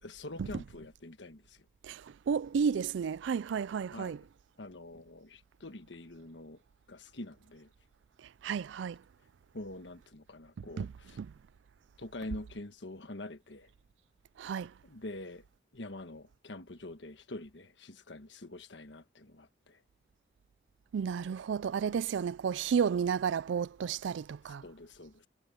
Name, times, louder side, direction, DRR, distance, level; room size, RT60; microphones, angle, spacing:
voice 1, 0.0-1.6 3.9-4.3 4.6-6.6 6.9-7.7 9.5-11.2 12.0-13.7 14.8-15.4 15.7-19.8 21.9-22.0 24.6-25.3, left 2 dB, 80° left, 1.4 m, -45 dB
voice 2, 1.8-4.2 8.4-9.0 10.8-10.9 11.2-11.3 14.4-14.7 20.9-24.6, right 6 dB, 85° right, 0.4 m, -32 dB
head